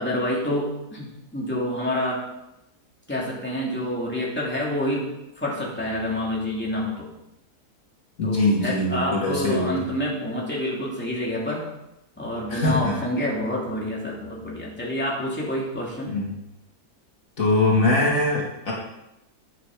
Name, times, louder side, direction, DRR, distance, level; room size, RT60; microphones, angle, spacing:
voice 1, 0.0-2.2 3.1-5.1 5.4-7.1 8.2-11.7 12.2-16.1, left 1 dB, 5° left, -5 dB, 2.7 m, -27 dB
voice 2, 8.2-9.7 12.5-12.9 16.1-16.4 17.4-18.7, left 2 dB, 60° left, -3 dB, 2.4 m, -22 dB
11.0 x 7.5 x 4.9 m, 0.90 s
omnidirectional pair, 1.6 m